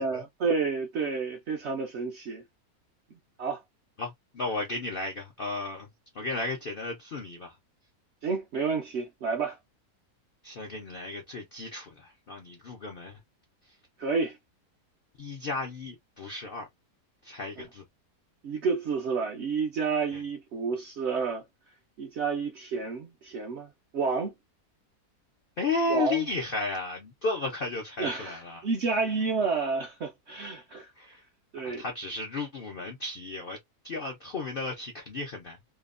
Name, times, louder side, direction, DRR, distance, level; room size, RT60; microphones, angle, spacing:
voice 1, 0.0-2.4 3.4-3.6 8.2-9.6 14.0-14.4 17.6-17.7 18.4-21.4 22.0-23.7 23.9-24.3 25.9-26.3 28.0-30.9 31.5-31.9, right 4 dB, 70° right, 0.6 m, -30 dB
voice 2, 4.0-5.9 6.1-7.6 10.4-13.2 15.2-16.7 17.2-17.8 20.1-20.2 25.6-28.7 31.0-31.2 31.6-33.6 33.8-35.6, left 3 dB, 65° left, 0.5 m, -34 dB
2.9 x 2.0 x 2.4 m
omnidirectional pair, 1.7 m